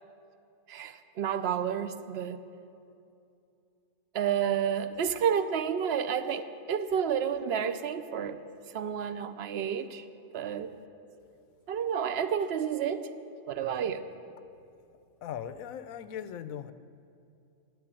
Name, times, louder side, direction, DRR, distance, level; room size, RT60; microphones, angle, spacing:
voice 1, 0.7-2.4 4.1-8.4 8.7-10.0 10.3-10.7 11.7-13.1 13.5-14.0, right 8 dB, 60° right, 12 dB, 0.7 m, -30 dB
voice 2, 15.2-16.7, left 9 dB, 85° left, 13 dB, 1.0 m, -39 dB
10.5 x 7.9 x 9.7 m, 2.6 s
omnidirectional pair, 1.4 m